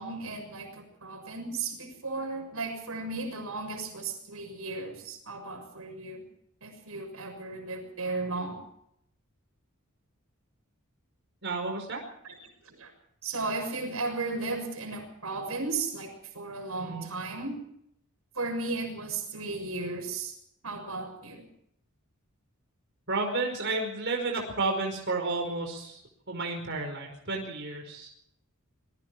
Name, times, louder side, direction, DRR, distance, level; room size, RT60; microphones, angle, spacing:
voice 1, 0.0-6.2 6.6-8.6 12.2-12.3 12.6-12.9 13.2-17.6 18.3-20.3 20.6-21.5, right 3 dB, 85° right, 5 dB, 6.7 m, -35 dB
voice 2, 11.4-12.0 16.8-17.1 23.1-26.0 26.3-28.1, right 3 dB, 55° right, 2 dB, 5.1 m, -31 dB
26.0 x 21.5 x 4.7 m, 0.72 s
head